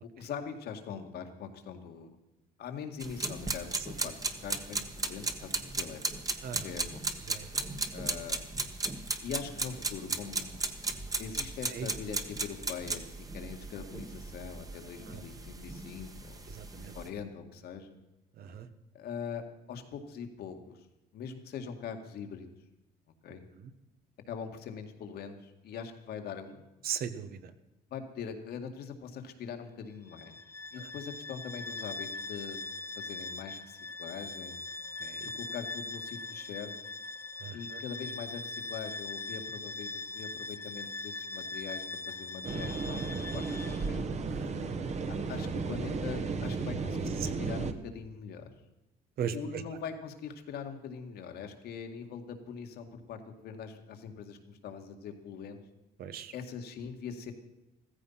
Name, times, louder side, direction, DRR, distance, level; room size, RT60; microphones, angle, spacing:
voice 1, 0.0-2.1 2.6-6.0 6.6-7.1 7.9-8.5 9.2-10.6 11.2-13.0 13.3-16.4 16.7-18.0 18.9-20.9 21.1-22.5 23.2-23.5 24.3-26.7 27.9-30.4 30.7-32.6 33.0-34.6 35.2-36.7 37.5-43.0 43.3-44.2 45.1-48.5 49.3-55.6 56.3-57.3, left 6 dB, 70° left, 6 dB, 2.1 m, -42 dB
sound 1, 3.0-17.1, right 3 dB, 20° right, 1.5 m, -36 dB
voice 2, 7.3-7.6 11.7-11.9 15.1-15.2 16.5-16.9 18.4-18.7 26.8-27.5 30.8-30.9 35.0-35.3 37.4-37.8 44.3-44.7 49.2-49.6 56.0-56.3, right 8 dB, 65° right, 11 dB, 1.4 m, -38 dB
Bowed string instrument, 30.1-43.9, left 3 dB, 15° left, 0.7 m, -41 dB
sound 2, 42.4-47.7, right 4 dB, 40° right, 1.4 m, -34 dB
15.0 x 14.5 x 5.8 m, 0.97 s
cardioid pair, 110°, 17 cm